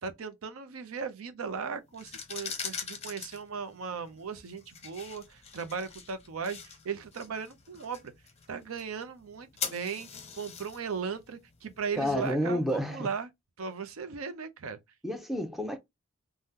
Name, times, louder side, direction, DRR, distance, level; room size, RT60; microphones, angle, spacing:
voice 1, 0.0-8.1 8.5-13.3 13.6-14.8, right 5 dB, 80° right, 0.5 m, -37 dB
sound 1, 1.9-12.7, left 6 dB, 30° left, 0.8 m, -43 dB
voice 2, 12.0-13.1 15.0-15.8, equal, ahead, 0.6 m, -30 dB
3.5 x 2.2 x 2.7 m
head